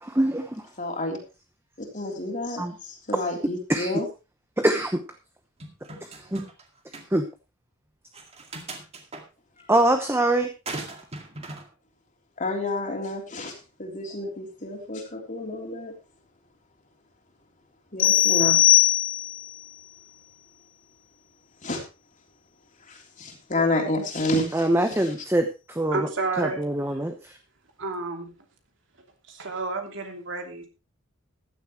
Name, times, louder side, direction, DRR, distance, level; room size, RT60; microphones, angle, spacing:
voice 1, 0.0-0.7 2.6-2.7 3.1-3.2 3.7-3.9 4.6-5.0 6.0-6.5 7.1-7.3 9.7-10.5 24.5-26.1 26.4-27.4, right 1 dB, 10° right, 6 dB, 0.9 m, -24 dB
voice 2, 0.8-1.2 1.9-4.0 12.4-15.9 17.9-18.6 21.6-21.8 22.9-24.6 25.0-25.1, left 2 dB, 40° left, 2 dB, 3.3 m, -29 dB
sound 1, 5.6-6.6 6.9-7.1 8.1-9.2 10.7-11.7, right 2 dB, 30° right, 2.1 m, -38 dB
sound 2, 18.0-19.5, left 14 dB, 70° left, 1.3 m, -19 dB
voice 3, 25.9-26.6 27.8-28.3 29.3-30.7, right 3 dB, 65° right, 3 dB, 2.9 m, -30 dB
15.0 x 11.0 x 3.1 m, 0.29 s
head